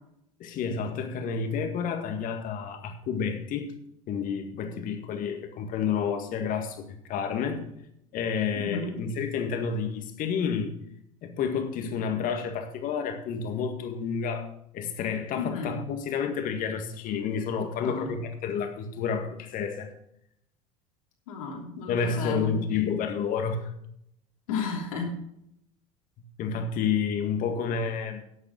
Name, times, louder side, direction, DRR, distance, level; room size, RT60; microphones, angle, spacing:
voice 1, 0.4-3.8 4.1-7.7 8.1-10.7 11.2-14.5 14.7-19.9 21.9-23.7 26.2-28.2, left 6 dB, 50° left, 1.9 m, -30 dB
voice 2, 8.5-9.0 15.4-15.8 17.8-18.1 21.3-22.5 24.5-25.1, left 5 dB, 70° left, 3.1 m, -33 dB
11.5 x 8.0 x 5.2 m
hypercardioid pair, 70°, 18 cm